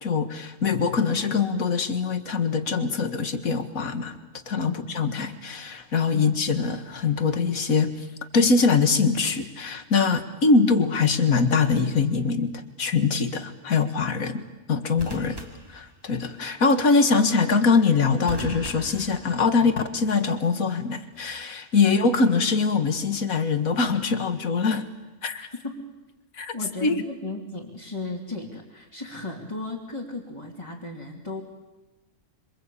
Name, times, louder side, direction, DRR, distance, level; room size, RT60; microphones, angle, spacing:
voice 1, 0.0-4.2 4.5-8.1 8.3-15.4 15.7-24.9 25.2-25.5 26.4-26.5 26.8-27.0, left 4 dB, 65° left, 8 dB, 2.2 m, -23 dB
sound 1, 11.1-11.5 15.0-16.5 18.3-19.9 21.1-21.5, right 1 dB, 15° right, 2.3 m, -41 dB
voice 2, 26.5-31.4, left 2 dB, 20° left, -2 dB, 2.9 m, -35 dB
26.5 x 26.0 x 8.6 m, 1.1 s
omnidirectional pair, 1.6 m